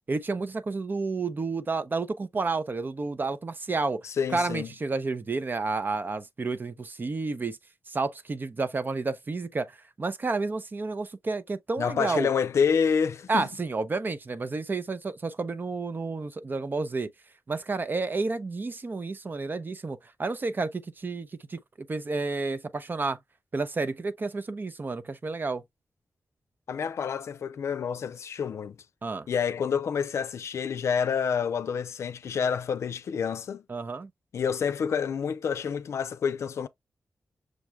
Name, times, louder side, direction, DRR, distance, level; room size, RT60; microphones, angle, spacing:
voice 1, 0.1-7.6 7.9-12.3 13.3-17.1 17.5-21.6 21.9-23.2 23.5-25.6 29.0-29.3 33.7-34.1, right 3 dB, 45° right, 0.6 m, -30 dB
voice 2, 4.0-4.7 11.8-13.5 26.7-28.8 29.3-33.6 34.3-36.7, left 6 dB, 75° left, 0.4 m, -28 dB
6.3 x 2.3 x 3.2 m
cardioid pair, 50°, 5 cm